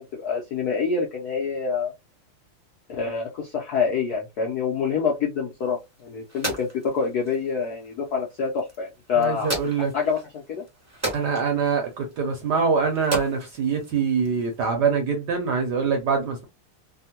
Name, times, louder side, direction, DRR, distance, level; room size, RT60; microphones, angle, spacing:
voice 1, 0.1-1.9 2.9-9.5 9.9-10.6, left 5 dB, 70° left, 0.9 m, -26 dB
sound 1, 5.6-14.6, right 1 dB, 15° right, 0.5 m, -37 dB
voice 2, 9.1-9.9 11.1-16.4, right 5 dB, 65° right, 1.1 m, -24 dB
3.4 x 2.2 x 2.8 m
omnidirectional pair, 2.4 m